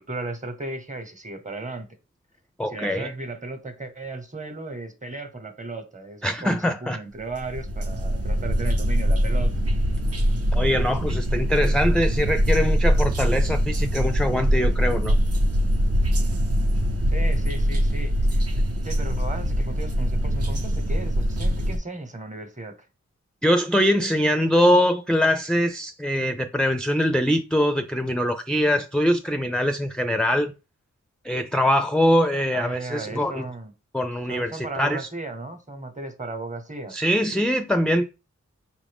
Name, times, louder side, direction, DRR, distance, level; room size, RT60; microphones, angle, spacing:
voice 1, 0.0-1.9 2.7-9.5 17.1-18.4 18.8-22.8 32.5-33.7 34.3-36.9, right 2 dB, 25° right, 1.1 m, -35 dB
voice 2, 2.6-3.1 6.2-7.0 10.5-15.2 23.4-30.5 31.2-33.5 33.9-35.1 36.9-38.0, equal, 5° left, 0.5 m, -23 dB
sound 1, 7.2-21.8, equal, 55° right, 0.9 m, -23 dB
5.5 x 2.5 x 3.5 m
cardioid pair, 45°, 29 cm